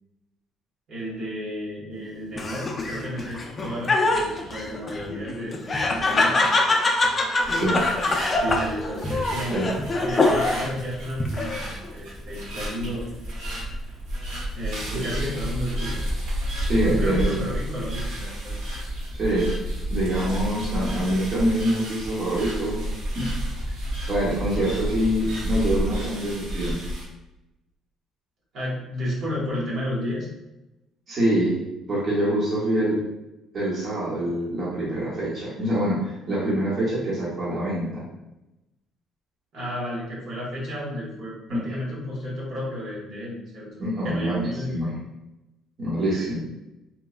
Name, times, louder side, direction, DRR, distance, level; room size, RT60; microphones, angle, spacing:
voice 1, 0.9-6.4 8.4-9.7 10.0-13.1 14.5-16.0 16.7-18.5 28.5-30.3 39.5-43.7 44.0-44.9 46.1-46.3, equal, 65° right, -6 dB, 1.1 m, -32 dB
Laughter, 2.4-10.8 11.2-11.9, left 2 dB, 30° left, 0.4 m, -24 dB
sound 1, 7.4-27.0, right 1 dB, 85° right, 1.0 m, -31 dB
voice 2, 16.7-17.4 19.1-19.5 19.9-22.8 23.1-23.3 24.1-26.8 31.1-31.6 31.9-33.0 33.5-38.0 43.8-44.4 44.7-44.9 45.8-46.4, right 1 dB, 40° right, -8 dB, 1.0 m, -25 dB
2.9 x 2.2 x 2.3 m, 0.96 s
cardioid pair, 110°, 0 cm